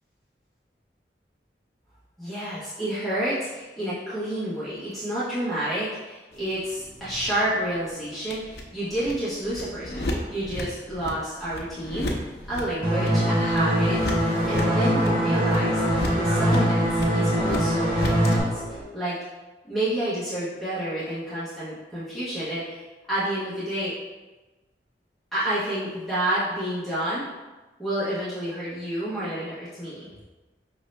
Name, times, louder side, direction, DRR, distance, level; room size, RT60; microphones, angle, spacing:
voice 1, 2.2-12.1 12.5-17.9 18.2-19.2 19.6-23.9 25.3-27.3 27.8-30.1, right 1 dB, ahead, -13 dB, 1.1 m, -29 dB
sound 1, 6.3-18.3, left 1 dB, 65° left, 0.6 m, -35 dB
sound 2, 12.8-18.4, equal, 30° right, 0.9 m, -22 dB
sound 3, 13.4-18.8, right 1 dB, 55° right, 1.1 m, -36 dB
5.2 x 2.7 x 3.2 m, 1.2 s
head